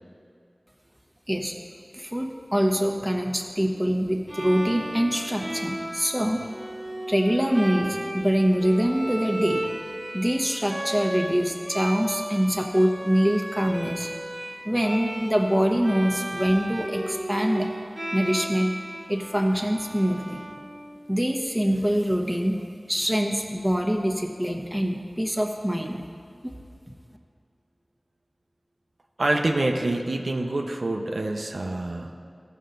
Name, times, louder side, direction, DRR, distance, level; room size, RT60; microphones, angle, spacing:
voice 1, 1.9-6.4 7.1-9.6 10.1-14.1 14.6-17.7 18.1-18.7 19.1-20.4 21.1-22.5 22.9-26.0 26.4-26.5, equal, 5° right, 2 dB, 1.0 m, -24 dB
Bowed string instrument, 4.3-21.2, right 1 dB, 30° right, 1.2 m, -34 dB
voice 2, 29.2-32.1, right 2 dB, 90° right, 2 dB, 0.6 m, -26 dB
15.0 x 5.5 x 3.9 m, 2.4 s
wide cardioid pair, 40°, 0 cm